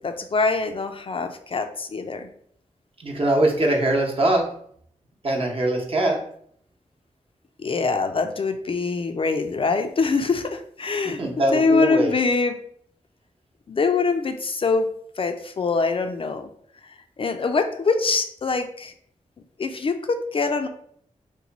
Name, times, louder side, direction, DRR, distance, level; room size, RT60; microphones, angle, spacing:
voice 1, 0.0-2.3 7.6-11.2 11.5-12.6 13.7-14.9 15.2-16.5 17.2-18.9 19.6-20.7, left 4 dB, 45° left, 7 dB, 0.4 m, -24 dB
voice 2, 3.0-4.5 5.2-6.2 11.2-12.1, right 1 dB, 45° right, 0 dB, 0.8 m, -22 dB
3.0 x 2.2 x 3.9 m, 0.64 s
cardioid pair, 70°, 13 cm